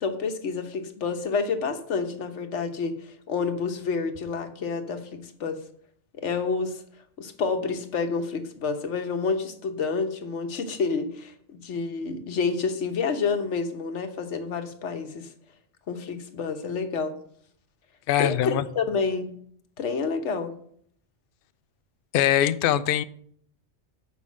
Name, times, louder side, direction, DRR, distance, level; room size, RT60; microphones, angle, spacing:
voice 1, 0.0-5.6 6.2-6.8 7.2-15.3 15.9-17.2 18.2-19.3 19.8-20.5, left 4 dB, 80° left, 8 dB, 1.3 m, -29 dB
voice 2, 18.1-18.7 22.1-23.0, left 11 dB, 60° left, 13 dB, 0.6 m, -22 dB
7.2 x 5.3 x 7.2 m, 0.62 s
omnidirectional pair, 1.2 m